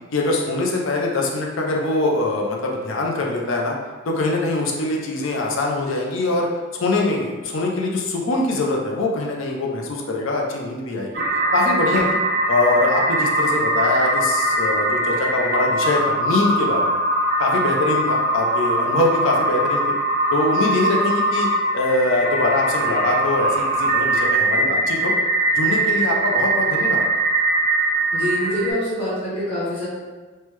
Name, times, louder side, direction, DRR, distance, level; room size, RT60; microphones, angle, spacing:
voice 1, 0.1-3.8 4.1-6.5 6.7-11.2 11.5-12.2 12.5-17.0 17.4-19.8 20.3-21.5 21.7-25.1 25.6-27.0, left 2 dB, 60° left, 0 dB, 0.5 m, -23 dB
sound 1, 11.1-28.7, right 1 dB, 40° right, 0.4 m, -21 dB
voice 2, 28.1-29.9, equal, 25° left, -9 dB, 0.8 m, -25 dB
3.2 x 2.1 x 3.1 m, 1.3 s
head